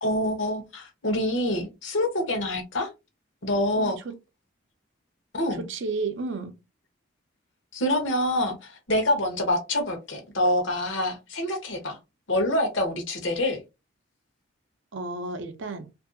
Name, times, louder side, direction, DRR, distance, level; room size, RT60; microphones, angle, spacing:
voice 1, 0.0-2.9 3.4-4.0 5.3-5.7 7.7-12.0 12.3-13.6, left 1 dB, 70° left, 0.9 m, -26 dB
voice 2, 3.8-4.1 5.6-6.6 14.9-15.9, right 3 dB, 65° right, 0.5 m, -32 dB
2.7 x 2.6 x 2.5 m
head